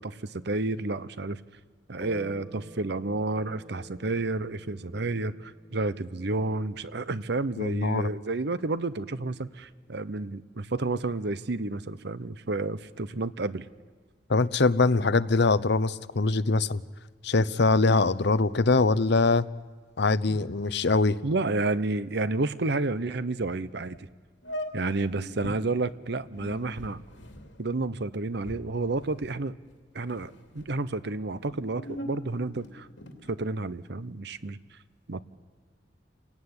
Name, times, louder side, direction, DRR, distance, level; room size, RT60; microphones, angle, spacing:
voice 1, 0.0-1.4 1.9-13.7 21.2-24.1 24.7-27.0 27.6-29.6 29.9-32.9 33.3-34.6 35.1-35.2, right 2 dB, 65° right, 15 dB, 0.9 m, -30 dB
sound 1, 2.0-10.9, right 1 dB, 25° right, 4.8 m, -51 dB
voice 2, 7.6-8.1 14.3-16.8 17.2-19.4 20.0-21.2, left 3 dB, 65° left, 14 dB, 0.8 m, -23 dB
sound 2, 23.9-24.0 24.4-25.6 26.2-29.7 30.0-30.7 31.3-33.3, equal, 85° left, 2.9 m, -41 dB
29.0 x 17.5 x 9.8 m, 1.5 s
head